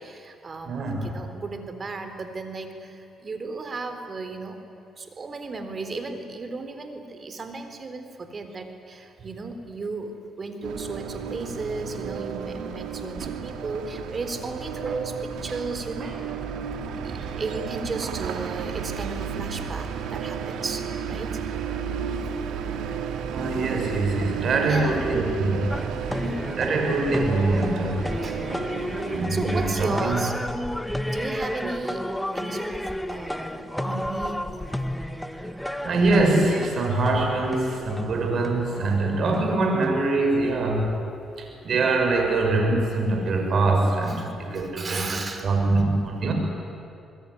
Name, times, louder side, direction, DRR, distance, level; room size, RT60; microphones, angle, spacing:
voice 1, 0.0-4.6 5.0-16.4 17.0-21.4 24.7-25.0 26.1-26.5 28.2-28.4 29.3-30.4 31.0-34.8 37.8-37.9 38.8-39.0 41.0-41.1 44.1-45.5, right 3 dB, 40° right, 7 dB, 3.8 m, -35 dB
voice 2, 0.7-1.0 16.0-16.1 17.2-17.3 23.3-25.6 26.6-28.1 29.1-30.3 35.8-40.9 41.4-46.3, right 2 dB, 60° right, 3 dB, 6.8 m, -24 dB
sound 1, 10.6-29.3, right 7 dB, 85° right, 2.1 m, -33 dB
sound 2, 25.7-40.2, equal, 5° left, 1.7 m, -32 dB
27.5 x 21.0 x 10.0 m, 2.7 s
cardioid pair, 75°, 0 cm